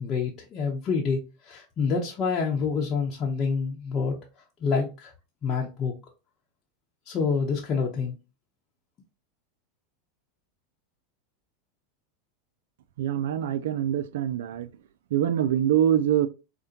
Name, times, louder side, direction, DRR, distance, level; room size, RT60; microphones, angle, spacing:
voice 1, 0.0-4.2 4.6-5.1 5.4-5.9 7.1-8.2, left 5 dB, 35° left, 0.8 m, -27 dB
voice 2, 13.0-14.7 15.1-16.3, right 10 dB, 70° right, 0.4 m, -24 dB
4.8 x 2.1 x 2.8 m
hypercardioid pair, 95°, 0 cm